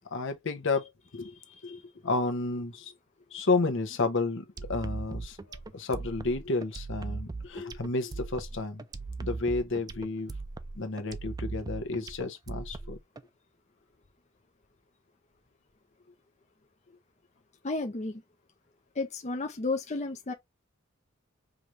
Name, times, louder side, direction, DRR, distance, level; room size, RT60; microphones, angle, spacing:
voice 1, 0.1-1.3 1.6-2.9 3.3-8.9 9.2-10.3 10.7-13.0, left 3 dB, 65° left, 0.9 m, -31 dB
sound 1, 4.6-13.2, right 3 dB, 20° right, 0.3 m, -39 dB
voice 2, 17.6-18.2 19.0-20.3, left 3 dB, 35° left, 0.7 m, -32 dB
4.9 x 3.1 x 2.5 m
head